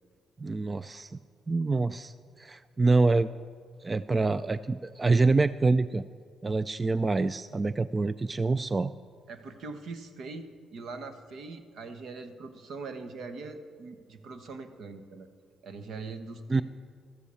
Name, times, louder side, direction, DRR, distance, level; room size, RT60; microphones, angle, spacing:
voice 1, 0.4-1.2 1.5-3.3 3.8-6.0 6.4-8.9 16.5-16.6, right 3 dB, 25° right, 14 dB, 0.3 m, -26 dB
voice 2, 9.3-15.3 15.6-16.6, right 3 dB, 70° right, 8 dB, 1.2 m, -42 dB
13.5 x 8.2 x 6.9 m, 2.2 s
cardioid pair, 90°, 0 cm